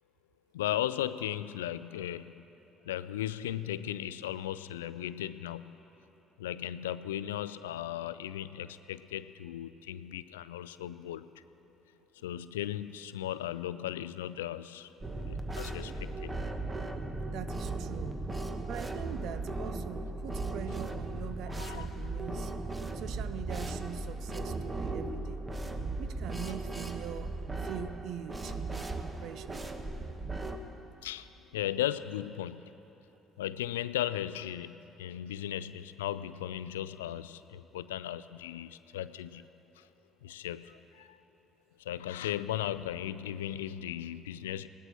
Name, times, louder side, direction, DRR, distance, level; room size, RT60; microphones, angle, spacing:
voice 1, 0.5-2.4 2.9-5.7 6.4-11.4 12.2-16.3 21.6-21.9 31.0-32.8 33.4-39.5 39.8-39.9 40.2-41.2 41.8-44.7, left 12 dB, 80° left, 15 dB, 0.3 m, -37 dB
sound 1, 15.0-30.6, right 2 dB, 25° right, 1.3 m, -37 dB
voice 2, 17.3-18.2 18.7-22.5 22.9-25.4 26.0-27.3 27.6-29.7, right 9 dB, 65° right, 13 dB, 0.6 m, -43 dB
17.0 x 12.0 x 6.0 m, 2.9 s
hypercardioid pair, 50°, 0 cm